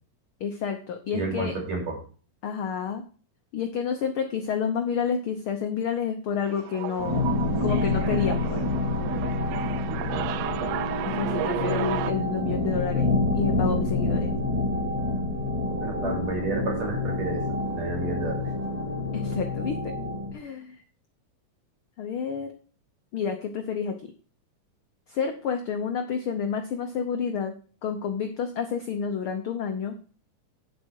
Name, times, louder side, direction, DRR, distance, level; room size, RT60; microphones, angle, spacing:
voice 1, 0.4-1.5 2.4-3.0 3.5-7.3 7.6-8.6 11.0-13.1 13.3-14.3 16.0-16.3 19.1-19.9 20.3-20.8 22.0-22.5 23.1-23.9 25.1-27.5 27.8-29.9, left 6 dB, 80° left, 6 dB, 1.1 m, -29 dB
voice 2, 1.1-2.0 9.9-10.3 15.8-17.4 17.8-18.5, right 3 dB, 55° right, 1 dB, 4.2 m, -31 dB
sound 1, 6.5-12.1, right 15 dB, 85° right, 2.2 m, -33 dB
sound 2, 7.0-20.3, left 2 dB, 15° right, 2.0 m, -27 dB
9.5 x 7.5 x 4.7 m, 0.39 s
omnidirectional pair, 3.7 m